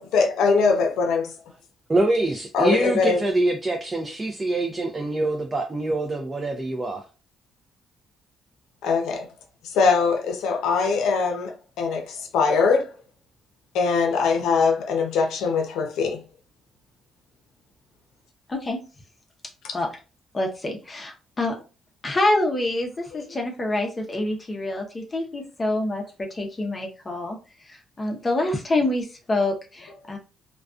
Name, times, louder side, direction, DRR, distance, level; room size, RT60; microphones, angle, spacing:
voice 1, 0.0-1.3 2.5-3.2 8.8-9.3 9.6-11.5 11.8-12.9 13.7-16.2, left 5 dB, 85° left, 0.5 m, -22 dB
voice 2, 1.9-7.0, right 2 dB, 25° right, 0.4 m, -25 dB
voice 3, 18.5-18.8 19.7-19.9 20.3-21.6 22.0-27.4 27.7-30.2, left 2 dB, 30° left, 0.6 m, -26 dB
2.4 x 2.2 x 2.4 m
cardioid pair, 90°, 0 cm